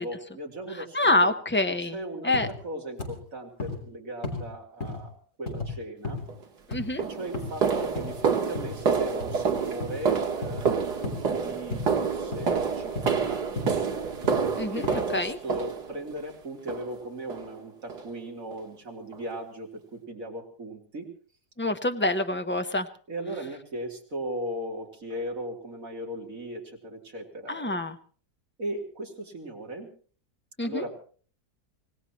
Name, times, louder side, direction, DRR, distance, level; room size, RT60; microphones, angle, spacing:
voice 1, 0.0-1.3 1.8-5.1 5.4-6.2 7.0-11.1 11.3-13.9 14.7-21.1 23.1-27.8 28.6-29.9 30.6-30.9, right 1 dB, 50° right, 1 dB, 3.6 m, -37 dB
voice 2, 0.8-2.5 6.7-7.0 14.6-15.4 21.6-22.9 27.5-28.0 30.6-30.8, left 2 dB, 15° left, 7 dB, 0.4 m, -26 dB
sound 1, 2.3-2.6 3.0-3.2 3.6-3.8 4.2-4.5 4.8-5.0 5.5-5.7 6.0-6.3 6.7-6.9 7.3-7.6 7.9-8.2 8.5-8.8 9.2-9.4 9.8-10.0 10.4-10.7 11.0-11.2 11.7-11.9 12.3-12.5 12.9-13.2 13.6-13.8 14.2-14.5 14.8-14.9, left 2 dB, 45° left, 3.8 m, -34 dB
sound 2, 6.3-6.4 7.0-16.2 16.7-17.0 17.3-17.5 17.9-18.1 18.5-18.6 19.1-19.2, right 6 dB, 75° right, 2.3 m, -28 dB
25.5 x 18.5 x 3.0 m, 0.42 s
omnidirectional pair, 1.8 m